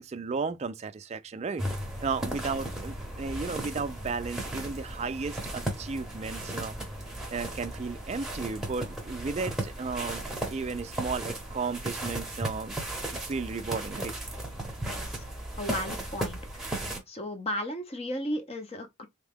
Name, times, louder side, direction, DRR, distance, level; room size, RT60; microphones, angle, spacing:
voice 1, 0.0-1.6 2.0-6.8 7.3-12.8 13.1-14.1, right 4 dB, 30° right, 0.3 m, -34 dB
sound 1, 1.6-17.0, right 1 dB, ahead, 0.9 m, -36 dB
voice 2, 14.9-15.2 15.6-16.6 17.1-19.1, left 1 dB, 30° left, 0.7 m, -35 dB
3.5 x 2.2 x 3.4 m
head